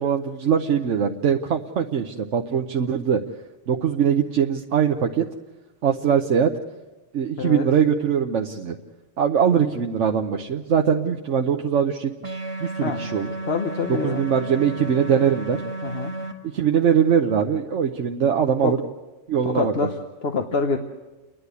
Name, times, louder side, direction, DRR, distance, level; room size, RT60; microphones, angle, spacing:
voice 1, 0.0-3.2 3.7-5.2 5.8-6.5 7.1-8.8 9.2-12.1 12.6-13.3 13.9-15.6 16.5-18.8 19.3-19.7, right 7 dB, 80° right, 2 dB, 1.2 m, -21 dB
sound 1, 12.2-16.3, right 2 dB, 25° right, 1.7 m, -32 dB
voice 2, 13.4-14.2 15.8-16.1 18.6-18.7 19.4-19.9 20.2-20.8, left 4 dB, 60° left, 5 dB, 1.2 m, -25 dB
29.5 x 11.0 x 8.2 m, 1.1 s
omnidirectional pair, 1.2 m